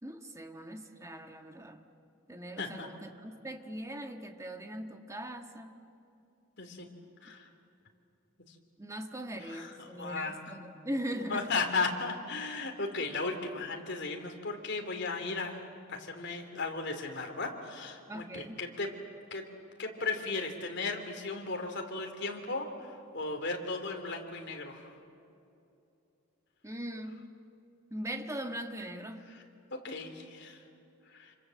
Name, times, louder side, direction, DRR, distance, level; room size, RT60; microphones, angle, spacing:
voice 1, 0.0-1.8 2.3-5.7 8.8-11.5 18.1-18.6 26.6-27.3 27.9-29.3, right 1 dB, 15° right, 5 dB, 1.5 m, -40 dB
voice 2, 2.6-2.9 6.6-6.9 7.2-7.5 9.4-10.4 11.3-15.6 15.9-18.9 19.3-19.4 19.8-24.9 29.3-29.4 29.7-30.6 31.1-31.3, left 3 dB, 55° left, 4 dB, 3.1 m, -36 dB
27.5 x 25.5 x 7.6 m, 2.7 s
head